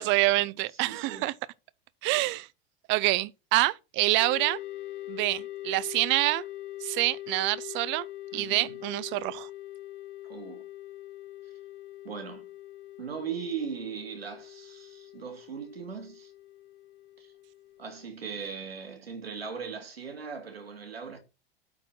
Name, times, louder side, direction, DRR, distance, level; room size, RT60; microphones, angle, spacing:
voice 1, 0.0-1.3 2.0-2.5 2.9-4.6 5.1-6.4 6.8-8.1 8.3-9.5, right 20 dB, 40° right, 0.6 m, -26 dB
voice 2, 0.7-1.3 8.3-8.8 10.3-10.6 12.0-12.5 13.0-16.3 17.2-17.3 17.8-21.2, right 6 dB, 85° right, 2.2 m, -39 dB
sound 1, 4.2-18.1, left 15 dB, 60° left, 1.2 m, -43 dB
8.5 x 4.3 x 6.2 m
figure-of-eight pair, 85°, 30 cm